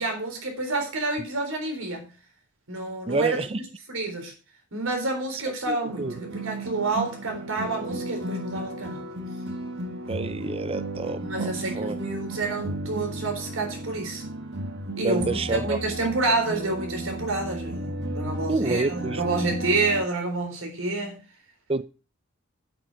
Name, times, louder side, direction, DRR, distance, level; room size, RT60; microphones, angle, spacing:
voice 1, 0.0-2.1 2.7-3.6 3.9-4.3 4.7-9.0 11.2-14.2 15.0-17.8 18.1-21.2, right 2 dB, 85° right, 3.9 m, -28 dB
voice 2, 3.1-3.6 5.7-6.1 10.1-12.0 15.0-15.8 18.5-19.2 21.7-21.8, right 3 dB, 30° right, 0.6 m, -28 dB
sound 1, 5.9-20.1, right 1 dB, 60° right, 1.5 m, -34 dB
8.9 x 8.8 x 4.6 m
head